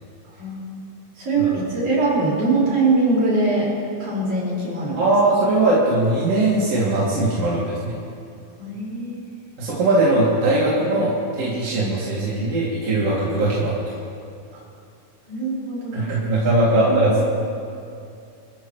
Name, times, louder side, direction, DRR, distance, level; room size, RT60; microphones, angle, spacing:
voice 1, 0.4-0.8 1.2-3.7 4.0-5.1 8.6-9.2 14.5-14.6 15.3-16.1 16.7-17.2, right 3 dB, 70° right, -6 dB, 6.3 m, -22 dB
voice 2, 5.0-7.9 9.6-13.9 15.9-17.2, right 2 dB, 50° right, -7 dB, 3.5 m, -20 dB
25.5 x 14.5 x 3.1 m, 2.5 s
omnidirectional pair, 3.6 m